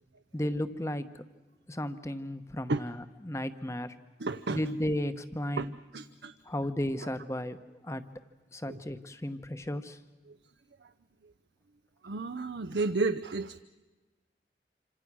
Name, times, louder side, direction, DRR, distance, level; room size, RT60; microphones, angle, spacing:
voice 1, 0.3-1.2 1.7-3.9 4.5-5.7 6.5-7.6 7.8-8.0 8.5-10.0, left 1 dB, 15° left, 11 dB, 1.0 m, -34 dB
voice 2, 4.2-4.6 5.6-5.7 5.9-6.4 8.7-8.8 12.0-13.6, right 3 dB, 80° right, 9 dB, 0.7 m, -31 dB
27.0 x 26.5 x 6.2 m, 1.2 s
head